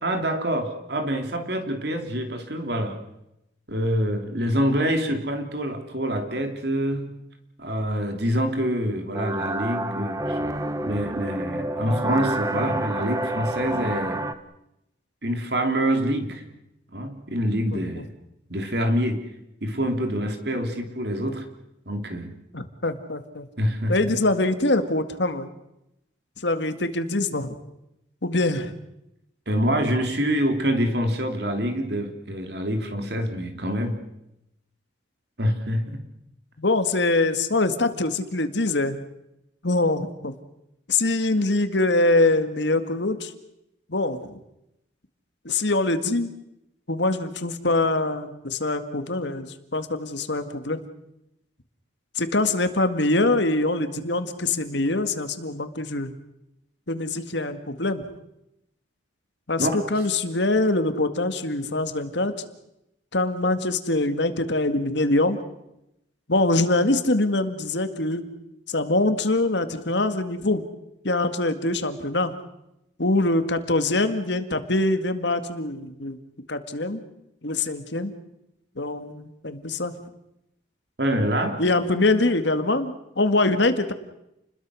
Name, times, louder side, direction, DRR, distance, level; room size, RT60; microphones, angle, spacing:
voice 1, 0.0-3.0 3.7-7.2 7.6-10.4 10.8-14.2 15.2-16.4 16.9-18.1 18.5-19.3 19.6-21.5 21.8-22.4 23.6-24.0 29.5-34.0 35.4-36.0 59.6-59.7 81.0-81.6, equal, 55° right, 6 dB, 3.1 m, -26 dB
sound 1, 9.1-14.3, right 1 dB, 15° right, 1.0 m, -28 dB
voice 2, 17.7-18.0 22.5-23.5 23.9-25.5 26.4-27.6 28.2-28.8 36.6-39.0 39.6-40.3 40.9-43.3 43.9-44.4 45.5-46.3 46.9-50.8 52.2-56.1 56.9-58.0 59.5-62.5 63.1-65.4 66.3-68.3 68.7-70.6 71.0-72.3 73.0-76.2 76.5-77.0 77.4-78.1 78.8-80.0 81.6-83.9, left 2 dB, 65° left, 9 dB, 1.9 m, -24 dB
29.5 x 21.5 x 6.3 m, 0.84 s
head